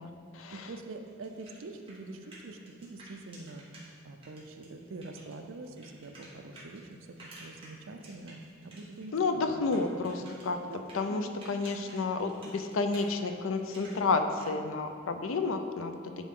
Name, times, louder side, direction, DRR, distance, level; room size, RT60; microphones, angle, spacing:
voice 1, 0.0-0.7 9.1-10.6 10.9-16.2, left 3 dB, 85° left, 7 dB, 0.5 m, -31 dB
voice 2, 0.5-3.7 4.0-9.7 10.2-10.3 10.7-11.3, right 2 dB, 80° right, 5 dB, 0.5 m, -45 dB
sound 1, 1.0-3.9 4.2-9.1 9.4-14.4, right 2 dB, 25° right, 1.5 m, -52 dB
10.0 x 3.8 x 3.7 m, 2.2 s
head